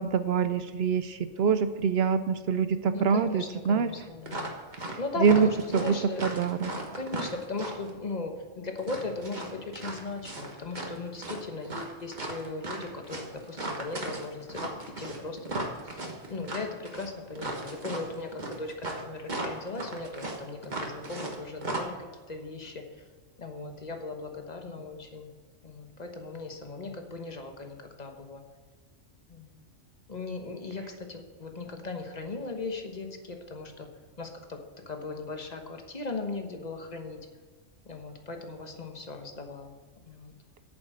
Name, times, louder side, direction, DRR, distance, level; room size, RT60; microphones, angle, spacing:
voice 1, 0.0-3.9 5.2-5.9 6.2-6.7, right 6 dB, 60° right, 11 dB, 0.8 m, -25 dB
voice 2, 2.9-4.5 5.0-6.2 6.9-14.7 15.0-16.0 16.3-22.8 23.4-25.3 25.6-28.4 29.3-29.6 30.1-33.9 34.2-34.6 34.9-37.2 37.9-39.8 40.1-40.3, left 3 dB, 35° left, 4 dB, 1.2 m, -38 dB
sound 1, 4.3-5.0 5.2-7.9 8.8-10.9 11.2-21.4 21.6-21.8, right 2 dB, 40° right, 1.5 m, -36 dB
8.7 x 7.3 x 7.7 m, 1.4 s
omnidirectional pair, 1.3 m